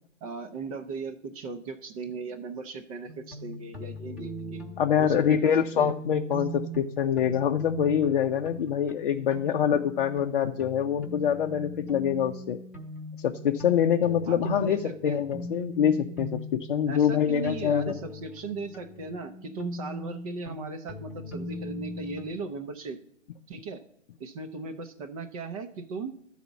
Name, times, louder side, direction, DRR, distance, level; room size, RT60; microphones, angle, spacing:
voice 1, 0.2-4.6 5.0-5.5 5.8-5.9 14.3-15.2 16.9-23.0 23.5-23.8 24.2-26.1, right 4 dB, 30° right, 8 dB, 0.7 m, -37 dB
sound 1, 3.1-22.3, equal, 5° right, 1.1 m, -40 dB
voice 2, 4.8-12.6 13.2-18.0, left 8 dB, 45° left, 4 dB, 0.6 m, -25 dB
12.0 x 4.2 x 7.0 m, 0.76 s
hypercardioid pair, 135°, 37 cm